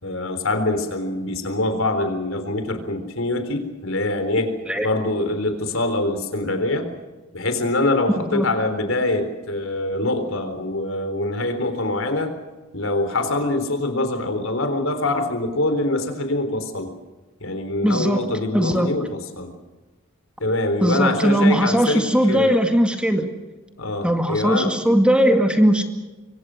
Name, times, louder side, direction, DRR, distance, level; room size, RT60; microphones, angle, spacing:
voice 1, 0.0-4.5 4.8-6.9 7.3-12.3 12.7-16.9 17.4-19.5 20.4-22.6 23.8-24.9, left 2 dB, 75° left, 8 dB, 3.9 m, -24 dB
voice 2, 8.2-8.5 17.8-18.2 18.5-18.9 20.8-23.3 24.0-25.9, equal, 5° right, 5 dB, 2.0 m, -19 dB
26.5 x 24.0 x 6.4 m, 1.2 s
head